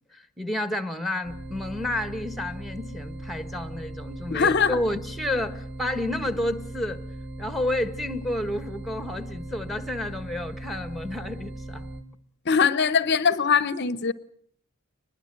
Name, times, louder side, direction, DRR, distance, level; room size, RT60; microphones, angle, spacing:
voice 1, 0.1-7.0 7.4-11.9, left 1 dB, ahead, 11 dB, 1.6 m, -30 dB
sound 1, 1.2-12.0, right 1 dB, 55° right, 4.0 m, -38 dB
voice 2, 4.3-4.8 12.5-14.1, left 6 dB, 50° left, 15 dB, 0.9 m, -21 dB
24.0 x 21.0 x 7.7 m, 0.63 s
head